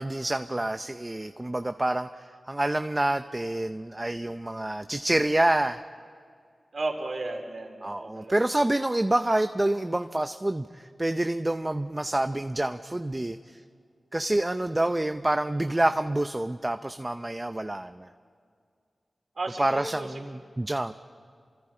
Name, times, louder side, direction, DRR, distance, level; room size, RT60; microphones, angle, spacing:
voice 1, 0.0-5.8 7.8-13.6 14.1-18.1 19.6-20.9, right 1 dB, 25° right, 8 dB, 0.7 m, -27 dB
voice 2, 6.7-8.3 19.4-20.2, right 2 dB, 65° right, 1 dB, 3.9 m, -34 dB
29.0 x 26.0 x 4.5 m, 2.2 s
cardioid pair, 50°, 0 cm